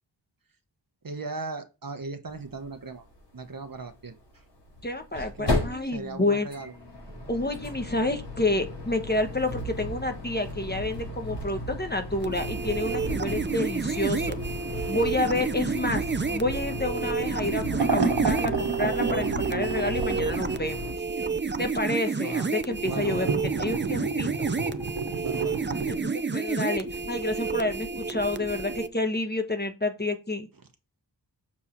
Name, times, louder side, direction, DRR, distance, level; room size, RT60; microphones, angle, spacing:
voice 1, 1.0-3.0 3.3-4.1 5.1-6.7 22.2-22.5 22.8-23.4 25.2-25.9, right 3 dB, 50° right, 7 dB, 1.2 m, -38 dB
sound 1, 2.3-2.4 2.6-2.7 4.6-20.9, left 1 dB, 80° left, 5.0 m, -35 dB
voice 2, 4.8-6.5 7.3-14.4 14.9-16.0 16.3-20.9 21.6-23.3 23.5-24.5 25.9-30.5, left 2 dB, 25° left, 6 dB, 1.1 m, -29 dB
sound 2, 12.2-28.9, right 4 dB, 25° right, 0.6 m, -30 dB
sound 3, 17.8-20.5 22.8-25.9, right 4 dB, 70° right, 1.6 m, -30 dB
7.2 x 4.7 x 4.5 m, 0.30 s
wide cardioid pair, 60°, 42 cm